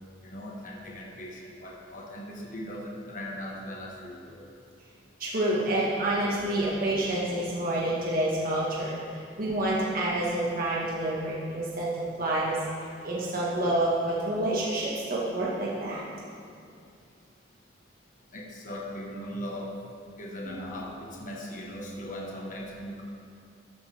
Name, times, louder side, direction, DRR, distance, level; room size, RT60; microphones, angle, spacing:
voice 1, 0.2-4.5 18.3-19.8 20.2-23.0, equal, 45° left, -2 dB, 1.3 m, -39 dB
voice 2, 5.2-12.6 13.0-16.0 20.5-20.6, right 1 dB, 50° right, -5 dB, 1.5 m, -28 dB
13.0 x 9.2 x 3.4 m, 2.5 s
head